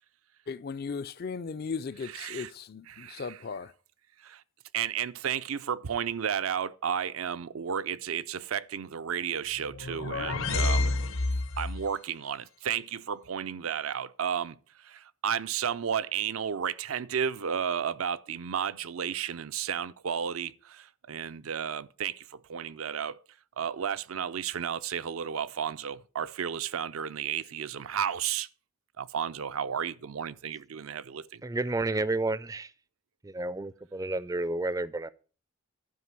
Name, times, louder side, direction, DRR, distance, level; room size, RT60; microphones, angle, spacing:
voice 1, 0.5-3.7, left 5 dB, 45° left, 0.4 m, -37 dB
voice 2, 2.0-2.5 2.9-3.4 4.2-4.4 4.7-10.9 11.6-23.2 23.6-28.5 29.0-31.4, right 8 dB, 75° right, 0.5 m, -33 dB
sound 1, 9.6-11.9, left 2 dB, 65° left, 0.9 m, -29 dB
voice 3, 31.4-32.7 33.2-35.1, right 2 dB, 15° right, 0.4 m, -31 dB
11.5 x 5.1 x 7.4 m
head